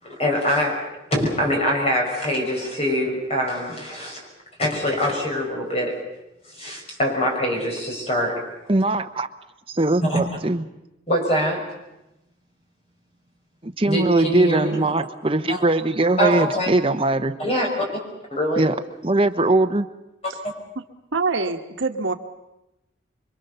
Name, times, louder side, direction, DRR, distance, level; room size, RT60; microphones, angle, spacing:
voice 1, 0.0-0.8 1.1-4.2 4.6-6.0 6.5-8.4 10.1-10.3 11.1-11.7 13.9-14.8 15.5-15.7 16.2-16.7 17.4-17.9 18.3-18.7, equal, 30° left, 0 dB, 6.1 m, -23 dB
voice 2, 8.7-9.3 9.7-10.6 13.6-17.3 18.6-18.7 19.0-19.9, right 2 dB, 30° right, 7 dB, 1.0 m, -21 dB
voice 3, 21.1-22.1, right 4 dB, 80° right, 5 dB, 1.4 m, -24 dB
26.5 x 23.5 x 6.9 m, 0.94 s
head